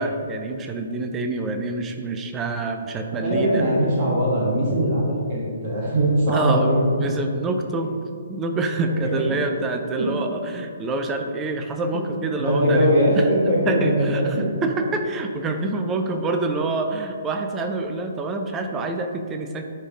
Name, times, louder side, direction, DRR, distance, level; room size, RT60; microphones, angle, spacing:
voice 1, 0.0-3.6 6.3-8.0 8.3-13.3 13.6-14.4 14.6-19.6, right 3 dB, 15° right, 5 dB, 0.4 m, -26 dB
voice 2, 3.1-6.8 9.0-9.2 10.0-10.1 11.9-12.1 12.4-14.5, right 1 dB, 35° right, -4 dB, 1.4 m, -21 dB
9.6 x 3.4 x 3.6 m, 2.3 s
figure-of-eight pair, 130°, 0 cm